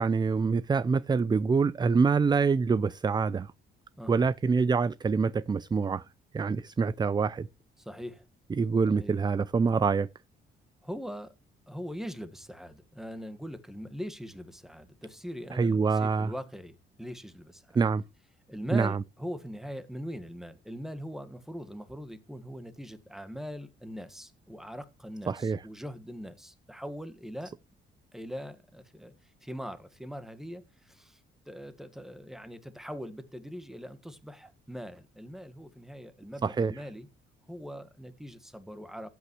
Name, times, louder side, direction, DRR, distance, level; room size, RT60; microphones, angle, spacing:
voice 1, 0.0-3.5 4.1-6.0 6.3-7.5 8.6-10.1 15.5-16.3 17.8-18.0 18.7-19.0 25.3-25.6 36.4-36.7, right 5 dB, 20° right, 0.4 m, -25 dB
voice 2, 4.0-4.3 7.8-8.2 8.9-9.1 10.8-11.3 11.7-17.8 18.5-27.5 28.1-29.1 29.4-31.2 31.4-37.1 37.5-39.1, equal, ahead, 1.7 m, -41 dB
15.5 x 8.5 x 3.1 m
cardioid pair, 90°, 20 cm